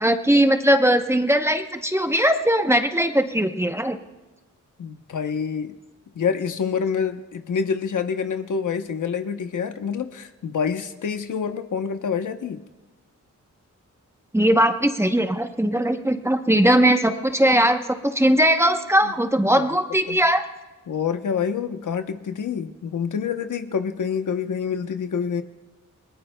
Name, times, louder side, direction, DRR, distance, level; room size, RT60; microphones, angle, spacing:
voice 1, 0.0-4.0 14.3-20.4, right 1 dB, 10° right, 6 dB, 0.8 m, -19 dB
voice 2, 4.8-5.7 6.1-12.6 19.0-19.1 19.6-19.7 20.1-20.2 20.9-25.4, left 6 dB, 75° left, 8 dB, 0.9 m, -27 dB
28.0 x 20.0 x 2.3 m, 1.1 s
wide cardioid pair, 95°, 31 cm